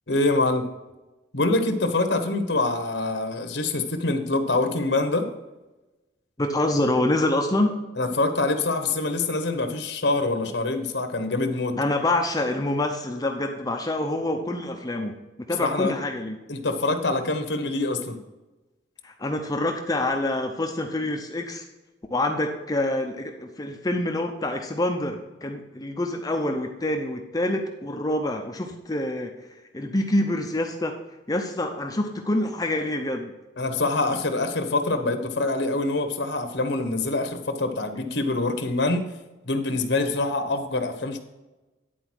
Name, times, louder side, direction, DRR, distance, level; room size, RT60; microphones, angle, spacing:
voice 1, 0.1-0.6 1.3-5.2 8.0-11.7 15.6-15.9 16.5-18.2 33.6-39.1 39.4-41.2, left 2 dB, 70° left, 7 dB, 1.1 m, -25 dB
voice 2, 6.4-7.7 11.8-15.1 15.4-16.4 19.0-21.6 22.1-29.3 29.7-30.9 31.3-33.3, left 1 dB, 20° left, 3 dB, 0.6 m, -26 dB
10.0 x 4.3 x 6.1 m, 1.1 s
head